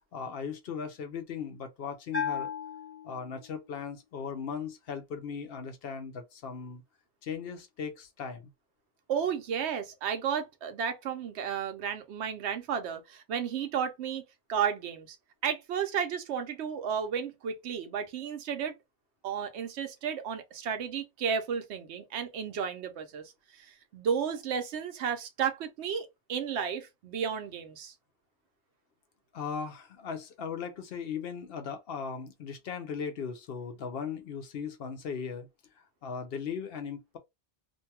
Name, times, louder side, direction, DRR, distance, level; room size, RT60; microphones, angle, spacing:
voice 1, 0.1-2.5 3.0-6.8 7.2-8.5 29.3-35.5 36.0-37.2, left 6 dB, 70° left, 0.8 m, -38 dB
Bell, 2.1-3.8, left 6 dB, 40° left, 1.0 m, -36 dB
voice 2, 9.1-15.2 15.4-18.7 19.2-27.9, right 7 dB, 85° right, 0.9 m, -33 dB
2.6 x 2.2 x 2.7 m
omnidirectional pair, 1.1 m